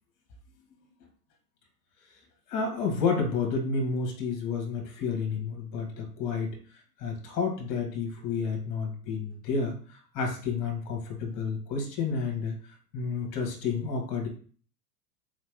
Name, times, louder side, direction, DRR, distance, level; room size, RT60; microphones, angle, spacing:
voice 1, 2.5-6.6 7.0-12.6 12.9-14.3, left 5 dB, 40° left, 2 dB, 1.3 m, -30 dB
3.8 x 3.2 x 3.3 m, 0.43 s
figure-of-eight pair, 90°, 48 cm